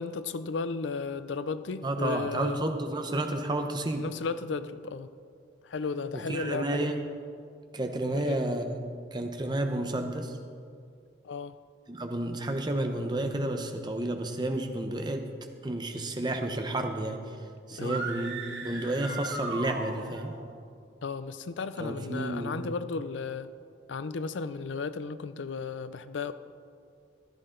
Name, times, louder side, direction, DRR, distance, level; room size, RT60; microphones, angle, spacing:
voice 1, 0.0-2.6 3.9-5.1 5.6-6.9 8.1-8.4 11.2-11.6 17.7-18.1 21.0-23.5 23.9-26.3, left 4 dB, 90° left, 13 dB, 0.5 m, -34 dB
voice 2, 1.8-4.1 6.1-7.0 7.7-8.8 9.1-10.4 11.9-15.3 15.6-17.2 17.7-18.4 18.6-20.3 21.8-22.6, right 1 dB, 25° right, 5 dB, 0.9 m, -31 dB
sound 1, 17.8-20.4, right 3 dB, 75° right, 1.7 m, -37 dB
14.5 x 12.0 x 3.8 m, 2.3 s
head